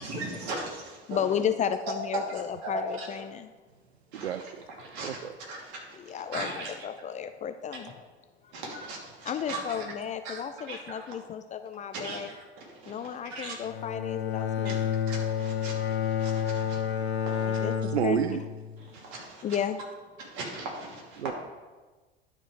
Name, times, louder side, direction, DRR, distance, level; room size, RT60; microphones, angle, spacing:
voice 1, 0.0-1.2 2.1-3.2 4.1-4.3 4.8-6.7 7.7-7.8 8.5-9.9 10.2-11.2 11.9-13.7 14.6-16.8 17.3-17.7 18.9-19.5 20.2-21.3, right 2 dB, 60° right, -1 dB, 2.7 m, -39 dB
voice 2, 1.1-3.5 6.0-7.9 8.4-8.5 9.3-12.3 12.9-15.0 17.5-18.2 19.4-19.8, left 8 dB, 25° left, 9 dB, 0.4 m, -33 dB
voice 3, 4.1-4.6 5.0-5.3 17.8-18.4 21.2-21.3, right 9 dB, 85° right, 8 dB, 0.5 m, -30 dB
Bowed string instrument, 13.6-18.9, left 8 dB, 85° left, 0.8 m, -30 dB
11.5 x 4.5 x 4.8 m, 1.3 s
figure-of-eight pair, 75°, 31 cm